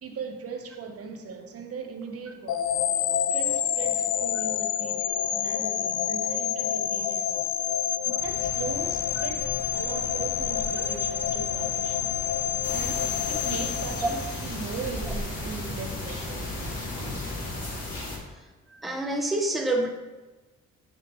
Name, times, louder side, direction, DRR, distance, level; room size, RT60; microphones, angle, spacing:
voice 1, 0.0-2.7 3.3-7.5 8.2-12.0 12.7-16.5, right 5 dB, 50° right, 0.9 m, -39 dB
sound 1, 2.5-14.6, left 10 dB, 75° left, 0.5 m, -28 dB
sound 2, 8.2-17.8, left 1 dB, 30° left, 1.2 m, -39 dB
sound 3, 12.6-18.2, left 2 dB, 55° left, 2.0 m, -35 dB
voice 2, 18.7-19.9, right 2 dB, ahead, 0.6 m, -27 dB
6.1 x 5.8 x 3.1 m
cardioid pair, 90°, 30 cm